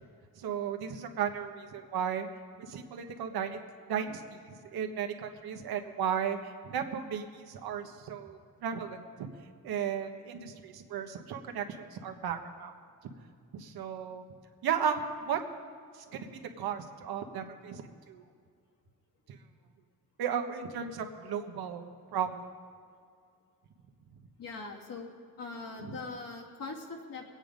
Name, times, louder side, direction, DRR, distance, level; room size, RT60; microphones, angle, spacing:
voice 1, 0.4-2.3 2.6-3.6 3.9-9.3 9.6-12.7 13.5-14.2 14.6-15.4 15.9-17.8 18.1-18.2 19.3-19.4 20.2-22.5 25.8-26.0, right 8 dB, 80° right, 5 dB, 1.4 m, -35 dB
voice 2, 24.4-25.1 25.4-27.2, left 3 dB, 65° left, 0 dB, 2.5 m, -41 dB
22.0 x 9.0 x 5.2 m, 2.3 s
cardioid pair, 105°, 37 cm